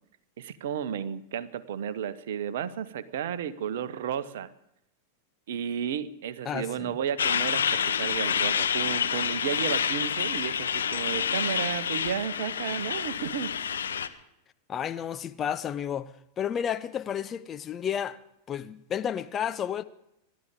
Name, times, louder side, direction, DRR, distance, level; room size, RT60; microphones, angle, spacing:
voice 1, 0.4-4.5 5.5-13.5, right 8 dB, 55° right, 0.9 m, -33 dB
voice 2, 6.5-7.0 14.7-16.1 16.4-18.2 18.5-19.8, left 9 dB, 25° left, 0.7 m, -31 dB
Truck, 7.2-14.1, left 7 dB, 70° left, 0.9 m, -28 dB
28.5 x 12.5 x 3.6 m
figure-of-eight pair, 90°, 0 cm